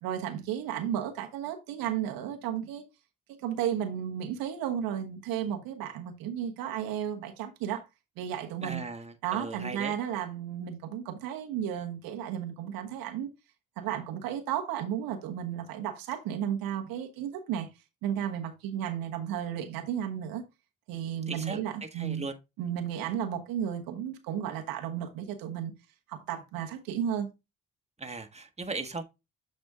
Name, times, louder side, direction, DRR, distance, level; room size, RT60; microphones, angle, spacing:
voice 1, 0.0-2.8 3.4-7.8 8.2-8.8 9.2-13.3 13.8-17.7 18.0-20.4 20.9-22.3 22.6-25.7 26.1-27.3, right 9 dB, 90° right, 1.1 m, -33 dB
voice 2, 8.6-9.9 21.3-22.4 28.0-29.0, right 3 dB, 20° right, 1.5 m, -38 dB
7.6 x 4.3 x 3.5 m
supercardioid pair, 55°, 34 cm